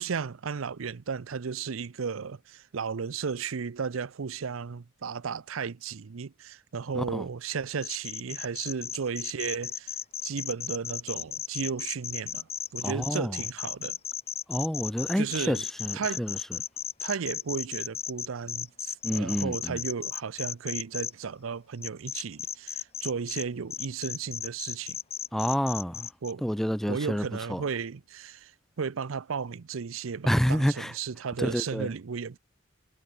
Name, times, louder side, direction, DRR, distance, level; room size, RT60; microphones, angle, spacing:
voice 1, 0.0-10.0 10.2-14.0 15.2-15.7 15.9-16.3 17.0-25.0 26.2-26.4 26.9-28.5 28.8-32.4, right 6 dB, 85° right, 0.6 m, -34 dB
voice 2, 6.9-7.2 12.8-13.4 14.5-16.4 19.0-19.8 25.3-26.1 26.4-27.6 30.2-30.9 31.4-31.9, equal, ahead, 0.7 m, -28 dB
sound 1, 7.8-21.1 21.8-23.4 23.7-26.3, left 8 dB, 30° left, 3.0 m, -35 dB
head